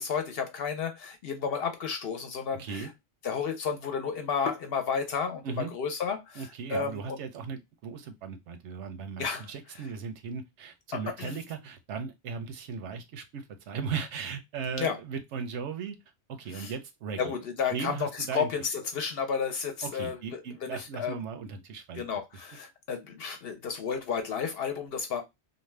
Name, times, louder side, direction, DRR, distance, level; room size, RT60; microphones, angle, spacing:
voice 1, 0.0-2.9 3.2-7.2 9.2-9.5 10.9-11.4 14.8-15.0 16.5-16.7 17.2-20.2 20.6-21.2 21.9-25.2, left 6 dB, 65° left, 0.7 m, -32 dB
voice 2, 2.6-2.9 5.4-5.7 6.4-16.0 16.4-17.3 17.7-18.5 19.8-22.0, right 6 dB, 90° right, 1.0 m, -37 dB
2.6 x 2.2 x 3.1 m
omnidirectional pair, 1.2 m